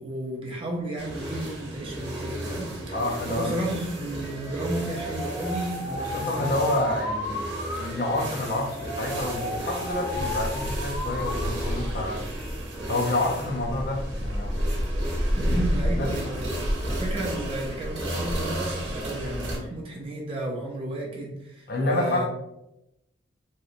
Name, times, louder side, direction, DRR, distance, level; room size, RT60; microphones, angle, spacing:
voice 1, 0.0-2.9 3.3-6.6 15.3-22.3, right 1 dB, 30° right, -2 dB, 0.4 m, -33 dB
sound 1, 1.0-19.6, equal, 65° right, 0.9 m, -31 dB
voice 2, 2.9-3.6 5.9-7.4 7.8-12.2 12.9-14.6 15.4-15.6 15.9-16.1 21.7-22.3, left 2 dB, 50° left, 0 dB, 0.5 m, -28 dB
Alarm, 4.2-11.5 11.8-12.4, left 1 dB, 30° left, 0.8 m, -35 dB
2.7 x 2.1 x 2.5 m, 0.87 s
head